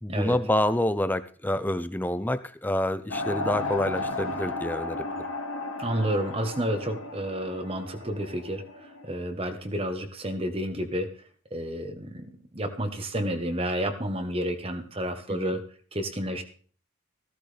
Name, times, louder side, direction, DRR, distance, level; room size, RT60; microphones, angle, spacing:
voice 1, 0.0-5.1 15.3-15.6, left 1 dB, 10° left, 11 dB, 0.6 m, -27 dB
sound 1, 3.1-9.1, left 2 dB, 80° left, 1.9 m, -34 dB
voice 2, 5.8-11.1 11.5-15.6 15.9-16.4, right 1 dB, 25° right, 7 dB, 1.2 m, -30 dB
14.5 x 14.0 x 3.4 m, 0.43 s
head